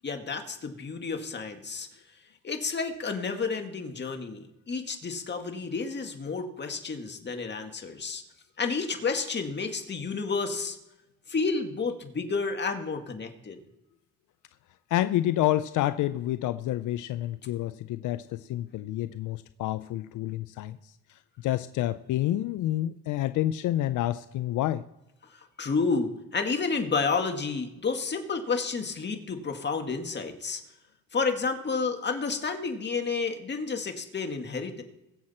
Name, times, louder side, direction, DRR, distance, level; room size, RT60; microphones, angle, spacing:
voice 1, 0.0-1.9 2.4-8.2 8.6-10.8 11.3-13.6 25.3-30.6 31.1-34.8, left 4 dB, 35° left, 5 dB, 2.0 m, -30 dB
voice 2, 14.9-20.9 21.4-24.8, left 14 dB, 80° left, 13 dB, 0.5 m, -28 dB
22.0 x 7.7 x 4.3 m, 0.94 s
cardioid pair, 90°, 30 cm